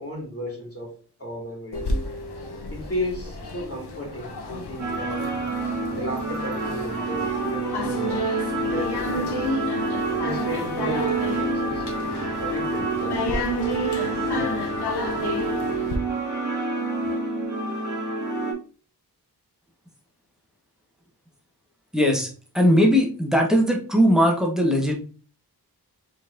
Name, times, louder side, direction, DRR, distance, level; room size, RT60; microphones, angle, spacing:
voice 1, 0.0-1.9 2.7-5.3 5.9-8.3 8.7-9.4 10.2-13.9, equal, 35° left, -2 dB, 2.5 m, -34 dB
sound 1, 1.7-16.0, left 2 dB, 85° left, 0.9 m, -32 dB
sound 2, 4.8-18.5, right 3 dB, 50° right, 1.8 m, -28 dB
voice 2, 21.9-22.3 22.5-24.9, equal, ahead, 0 dB, 1.2 m, -19 dB
5.0 x 4.0 x 2.5 m, 0.39 s
wide cardioid pair, 70°, 39 cm